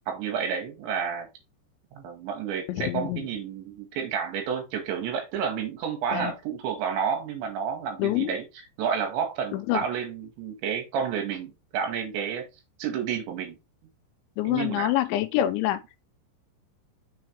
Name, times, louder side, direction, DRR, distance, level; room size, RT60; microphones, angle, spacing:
voice 1, 0.1-1.3 1.9-8.5 8.8-12.5 12.8-13.6 14.4-14.9, right 7 dB, 80° right, 4.0 m, -30 dB
voice 2, 2.7-3.3 6.1-6.3 8.0-8.3 9.5-9.8 14.4-15.8, left 14 dB, 85° left, 3.1 m, -26 dB
7.1 x 6.7 x 3.4 m
omnidirectional pair, 5.3 m